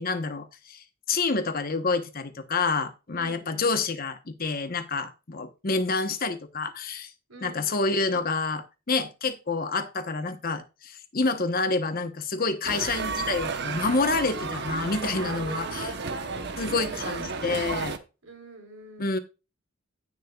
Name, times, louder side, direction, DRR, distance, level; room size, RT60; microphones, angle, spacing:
voice 1, 0.0-7.1 7.4-15.9 16.6-18.0 19.0-19.2, left 3 dB, 45° left, 8 dB, 1.0 m, -28 dB
voice 2, 3.1-3.8 7.3-7.7 15.2-17.1 18.2-19.2, right 2 dB, 75° right, 4 dB, 3.8 m, -43 dB
sound 1, 12.6-18.0, right 4 dB, 55° right, 0.9 m, -32 dB
16.5 x 6.6 x 2.3 m, 0.29 s
head